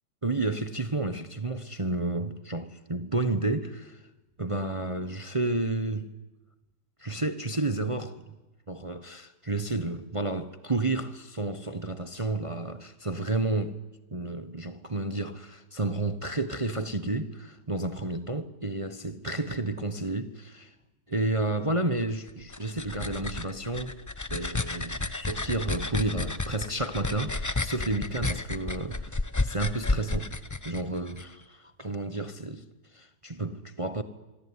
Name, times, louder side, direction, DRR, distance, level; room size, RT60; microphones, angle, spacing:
voice 1, 0.2-4.0 4.4-6.1 7.0-8.3 8.7-13.8 14.1-20.7 21.1-24.0 24.3-30.3 30.6-32.6 32.9-34.0, right 2 dB, 25° right, 0.9 m, -31 dB
sound 1, 22.3-31.2, left 2 dB, 25° left, 0.4 m, -32 dB
25.5 x 24.5 x 9.7 m
omnidirectional pair, 1.8 m